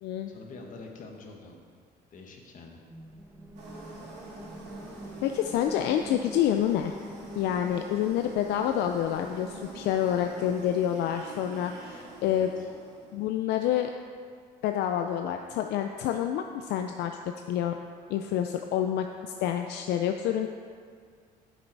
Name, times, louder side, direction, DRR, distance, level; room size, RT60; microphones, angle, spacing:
voice 1, 0.3-1.6 2.1-2.8 12.2-12.7, left 3 dB, 50° left, 2 dB, 1.4 m, -46 dB
sound 1, 2.9-10.7, equal, 15° right, 0.7 m, -47 dB
sound 2, 3.5-13.3, right 2 dB, 80° right, 2.5 m, -46 dB
voice 2, 5.2-7.0 7.3-12.5 13.1-13.9 14.6-17.1 17.5-17.8 18.1-20.5, left 10 dB, 80° left, 5 dB, 0.4 m, -28 dB
8.1 x 7.4 x 4.6 m, 2.1 s
cardioid pair, 110°, 17 cm